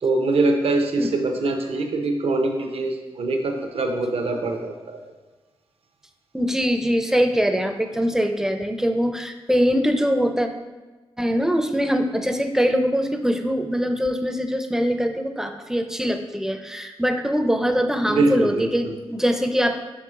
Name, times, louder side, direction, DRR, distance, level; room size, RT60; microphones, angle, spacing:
voice 1, 0.0-5.0 18.1-18.9, right 2 dB, 70° right, 4 dB, 0.7 m, -23 dB
voice 2, 6.3-10.5 11.2-19.8, equal, 5° right, 6 dB, 0.4 m, -22 dB
5.7 x 4.7 x 3.7 m, 1.2 s
wide cardioid pair, 100°, 10 cm